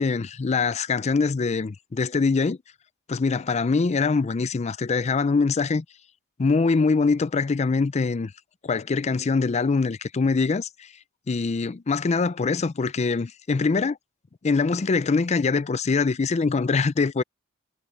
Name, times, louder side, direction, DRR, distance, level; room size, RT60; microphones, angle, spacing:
voice 1, 0.0-2.6 3.1-5.8 6.4-8.3 8.6-10.9 11.3-14.0 14.4-17.2, left 4 dB, 30° left, 0.4 m, -23 dB
head